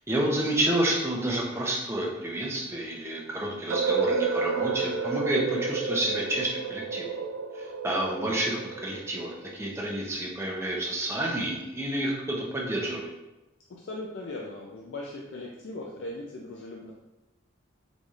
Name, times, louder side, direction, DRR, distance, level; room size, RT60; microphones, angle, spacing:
voice 1, 0.1-7.1 7.5-13.1, right 1 dB, 15° right, -3 dB, 0.6 m, -29 dB
sound 1, 3.7-9.6, right 5 dB, 90° right, 0.3 m, -30 dB
voice 2, 13.7-16.9, left 2 dB, 65° left, -2 dB, 0.4 m, -39 dB
4.0 x 3.3 x 2.4 m, 1.0 s
head